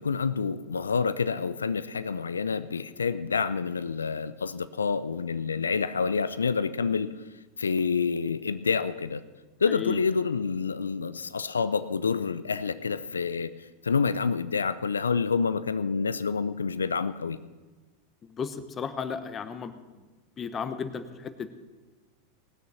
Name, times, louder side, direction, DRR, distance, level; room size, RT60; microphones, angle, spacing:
voice 1, 0.0-7.2 7.6-9.2 9.6-13.5 13.8-17.4, left 5 dB, 90° left, 15 dB, 0.4 m, -28 dB
voice 2, 9.7-10.0 18.2-19.8 20.4-21.5, left 6 dB, 30° left, 10 dB, 1.1 m, -34 dB
19.0 x 6.5 x 6.9 m, 1.3 s
hypercardioid pair, 95°, 0 cm